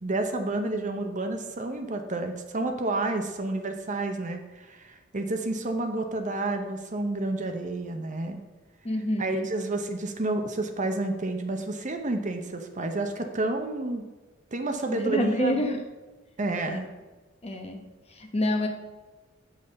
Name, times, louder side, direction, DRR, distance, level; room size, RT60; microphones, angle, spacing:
voice 1, 0.0-8.4 9.2-14.0 14.5-15.6 16.4-16.9, right 2 dB, 40° right, 5 dB, 0.8 m, -30 dB
voice 2, 8.8-9.5 14.9-15.8 16.7-16.8 17.4-18.7, left 1 dB, 30° left, 4 dB, 1.0 m, -28 dB
8.4 x 5.6 x 5.2 m, 1.2 s
head